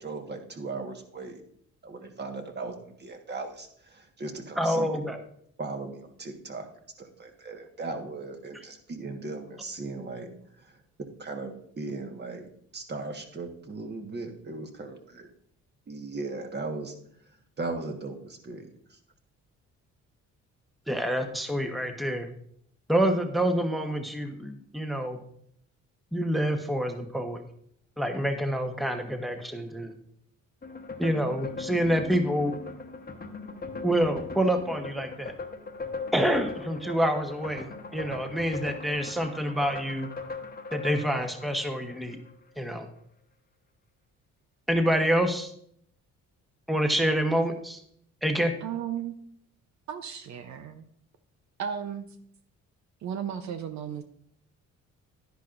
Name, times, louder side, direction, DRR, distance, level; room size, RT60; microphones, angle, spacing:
voice 1, 0.0-1.4 1.8-4.9 5.6-6.7 7.0-10.3 10.6-10.8 11.2-15.3 15.9-16.9 17.6-19.0, right 3 dB, 35° right, 4 dB, 1.5 m, -38 dB
voice 2, 4.6-5.2 20.9-22.3 22.9-25.2 26.1-27.4 28.0-29.9 31.0-32.5 33.8-35.3 36.1-40.1 40.7-42.2 42.6-42.9 44.7-45.5 46.7-47.8 48.2-48.5, equal, ahead, 5 dB, 1.1 m, -27 dB
sound 1, 30.6-42.3, left 3 dB, 30° left, 1.1 m, -39 dB
voice 3, 48.6-49.1 49.9-50.8 51.6-52.1 53.0-54.0, right 8 dB, 65° right, 8 dB, 0.7 m, -34 dB
10.5 x 10.5 x 2.6 m, 0.67 s
cardioid pair, 90°, 30 cm